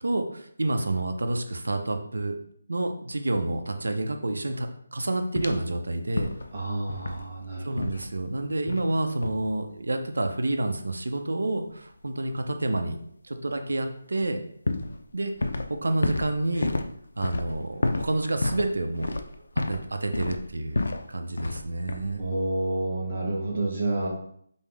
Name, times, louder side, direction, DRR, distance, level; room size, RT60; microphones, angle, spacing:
voice 1, 0.0-2.4 2.7-6.3 7.6-13.0 13.2-14.4 15.1-15.3 15.7-16.7 17.2-19.2 19.6-20.8 21.1-22.2, right 2 dB, 90° right, 5 dB, 0.6 m, -29 dB
sound 1, 5.4-5.7 6.2-6.6 6.9-7.3 7.8-8.1 8.7-8.9 9.2-9.5 14.1-14.3 14.7-15.8 16.0-19.9 20.1-21.1 21.4-21.6 21.9-22.2, left 2 dB, 60° left, 0.3 m, -30 dB
voice 2, 6.5-7.7 22.2-24.1, right 2 dB, 25° right, -3 dB, 0.8 m, -29 dB
5.4 x 2.0 x 3.3 m, 0.66 s
hypercardioid pair, 180°, 0 cm